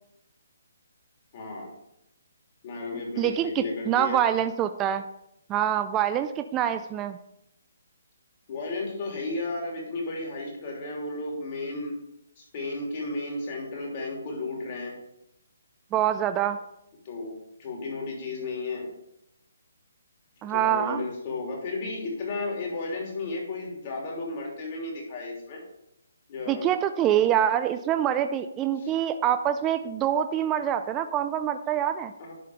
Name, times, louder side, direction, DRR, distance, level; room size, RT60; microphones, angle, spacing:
voice 1, 1.3-1.7 2.6-4.2 8.5-11.9 12.4-15.0 17.0-18.9 20.5-25.6 26.3-26.7 28.7-28.9 32.2-32.3, left 3 dB, 35° left, -1 dB, 3.1 m, -33 dB
voice 2, 3.2-5.0 5.5-7.2 15.9-16.6 20.4-21.0 26.5-32.1, right 10 dB, 15° right, 9 dB, 0.4 m, -25 dB
11.0 x 4.3 x 4.9 m, 0.83 s
hypercardioid pair, 160°, 0 cm